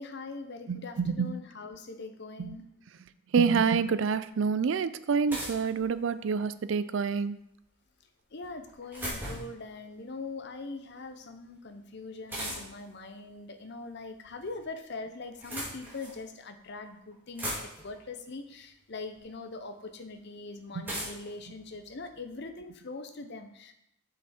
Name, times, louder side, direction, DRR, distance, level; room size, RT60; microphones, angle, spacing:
voice 1, 0.0-2.6 8.3-23.7, left 3 dB, 50° left, 7 dB, 0.7 m, -42 dB
voice 2, 0.7-1.3 2.4-2.6 3.3-7.4 20.7-20.8, right 5 dB, 60° right, 14 dB, 0.4 m, -27 dB
sound 1, 5.3-6.4 8.4-9.6 12.3-12.9 14.0-14.6 15.2-16.2 16.8-16.9 17.1-18.0 19.1-19.2 20.8-22.4, equal, 10° right, 2.0 m, -39 dB
7.3 x 5.8 x 4.3 m, 0.78 s
head